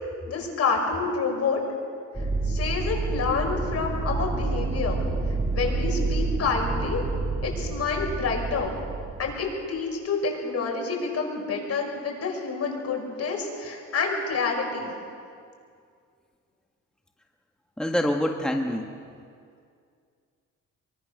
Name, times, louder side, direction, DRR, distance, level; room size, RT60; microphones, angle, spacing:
voice 1, 0.3-1.6 2.4-5.0 5.5-7.0 7.4-8.7 9.2-14.9, left 4 dB, 55° left, 2 dB, 5.8 m, -28 dB
sound 1, 2.1-9.3, right 3 dB, 15° right, 6.5 m, -28 dB
voice 2, 17.8-18.9, equal, 5° left, 2 dB, 1.6 m, -25 dB
25.0 x 23.5 x 6.6 m, 2.3 s
cardioid pair, 90°, 30 cm